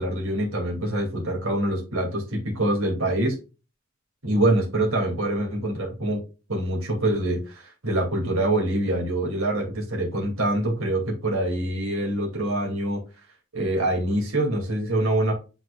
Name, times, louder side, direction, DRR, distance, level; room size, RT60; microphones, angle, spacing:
voice 1, 0.0-3.4 4.2-6.2 6.5-13.0 13.5-15.3, right 1 dB, 85° right, 0 dB, 2.3 m, -25 dB
9.1 x 4.4 x 2.3 m, 0.31 s
head